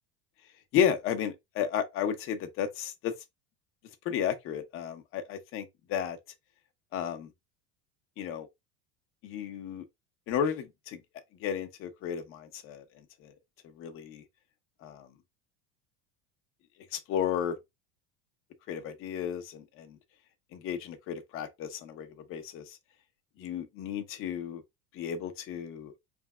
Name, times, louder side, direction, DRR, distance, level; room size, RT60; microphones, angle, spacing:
voice 1, 0.7-3.1 4.0-6.2 6.9-7.3 8.2-8.5 9.2-9.8 10.3-11.0 11.4-12.8 13.2-13.3 13.8-14.2 14.8-15.1 16.9-17.6 18.7-20.0 20.5-22.8 23.4-24.6 24.9-25.9, left 8 dB, 40° left, 0.9 m, -33 dB
5.2 x 3.5 x 2.3 m
cardioid pair, 155°, 33 cm